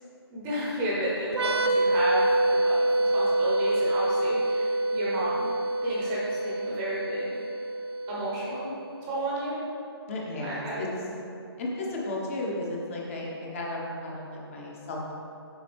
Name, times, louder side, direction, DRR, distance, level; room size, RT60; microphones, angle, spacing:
voice 1, 0.3-5.5 5.8-7.4 8.1-9.6 10.4-11.1, right 1 dB, 15° right, -6 dB, 0.8 m, -32 dB
sound 1, 1.3-8.8, right 1 dB, 85° right, 0.5 m, -26 dB
voice 2, 10.1-10.9 11.6-15.1, left 2 dB, 30° left, -2 dB, 1.0 m, -34 dB
7.5 x 5.3 x 3.5 m, 2.7 s
hypercardioid pair, 160°, 13 cm